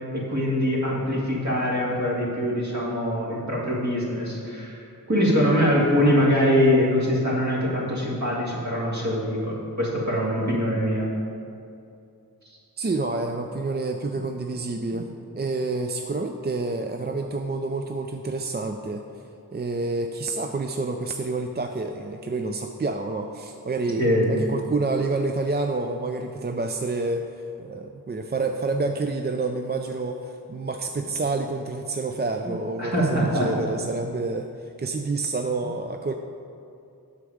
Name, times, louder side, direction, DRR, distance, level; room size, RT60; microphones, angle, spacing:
voice 1, 0.1-4.8 5.1-11.1 24.0-24.3 32.8-33.5, equal, 50° right, -5 dB, 2.3 m, -23 dB
voice 2, 12.8-15.1 15.4-19.0 19.5-27.3 27.6-36.1, right 3 dB, 30° right, 5 dB, 0.4 m, -28 dB
8.1 x 7.1 x 5.0 m, 2.5 s
wide cardioid pair, 60°, 37 cm